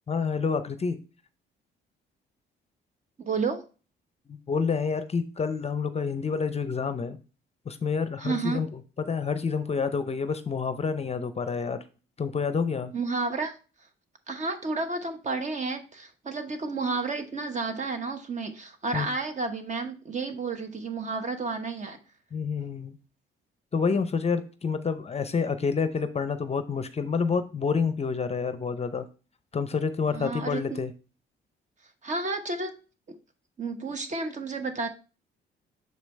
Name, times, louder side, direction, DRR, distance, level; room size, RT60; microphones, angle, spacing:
voice 1, 0.1-1.0 4.3-7.2 7.7-11.8 12.2-12.9 18.9-19.1 22.3-23.0 23.7-29.1 29.5-30.9, left 5 dB, 30° left, 11 dB, 0.6 m, -28 dB
voice 2, 3.2-3.6 8.2-8.6 12.9-13.6 14.3-22.0 30.1-30.8 32.0-32.7 33.6-34.9, right 3 dB, 35° right, 7 dB, 1.1 m, -31 dB
6.7 x 4.9 x 3.2 m, 0.34 s
cardioid pair, 90°, 20 cm